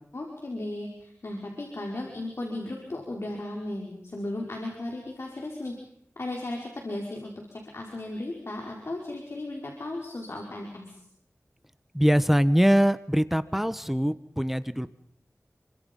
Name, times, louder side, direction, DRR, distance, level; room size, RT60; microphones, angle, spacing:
voice 1, 0.1-5.7 6.2-11.0, left 1 dB, 60° left, 0 dB, 5.4 m, -36 dB
voice 2, 11.9-14.9, equal, 5° right, 14 dB, 1.1 m, -23 dB
30.0 x 25.0 x 5.6 m, 0.67 s
wide cardioid pair, 55°, 5 cm